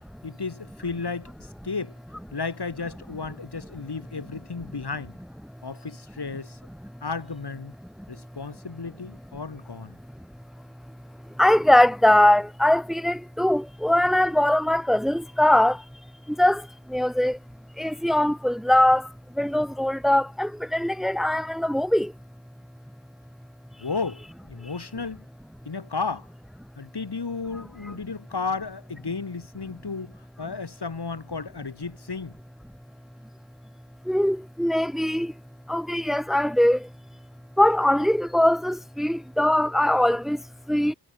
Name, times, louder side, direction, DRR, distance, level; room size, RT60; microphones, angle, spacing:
voice 1, 0.2-1.9 2.3-5.1 5.6-6.6 7.0-7.7 8.1-10.0 23.8-25.2 25.6-26.3 26.8-32.3, left 4 dB, 60° left, 4.5 m, -33 dB
voice 2, 11.4-15.8 16.4-16.6 16.9-17.4 17.8-19.1 19.4-22.1 34.1-35.3 35.7-36.8 37.6-40.4 40.7-40.9, left 1 dB, ahead, 1.7 m, -21 dB
wide cardioid pair, 80°, 44 cm